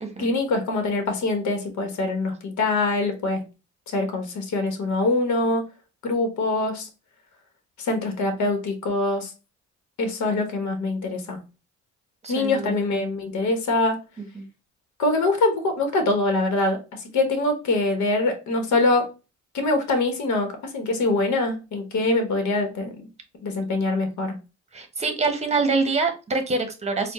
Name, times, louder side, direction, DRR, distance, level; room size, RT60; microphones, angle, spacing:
voice 1, 0.2-3.4 3.9-5.6 6.0-6.9 7.8-9.3 10.0-11.4 12.3-14.0 15.0-16.8 17.1-19.1 19.5-23.1 23.4-24.3, left 2 dB, 70° left, 6 dB, 1.1 m, -24 dB
voice 2, 12.2-12.7 14.3-14.4 24.7-27.1, right 3 dB, 20° right, 6 dB, 1.0 m, -25 dB
4.3 x 2.2 x 3.1 m, 0.30 s
cardioid pair, 90°, 30 cm